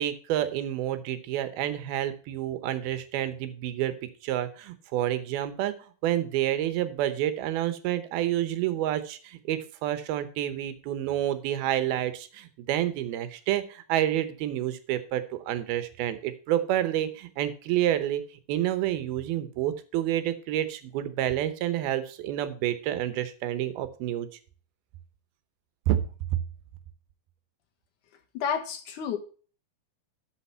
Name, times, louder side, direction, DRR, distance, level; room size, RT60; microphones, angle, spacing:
voice 1, 0.0-3.9 4.2-5.8 6.0-18.2 18.5-24.3 25.9-26.0, right 12 dB, 85° right, 11 dB, 2.8 m, -29 dB
voice 2, 28.3-29.2, left 7 dB, 65° left, 5 dB, 2.4 m, -30 dB
12.5 x 6.3 x 4.4 m, 0.39 s
omnidirectional pair, 4.3 m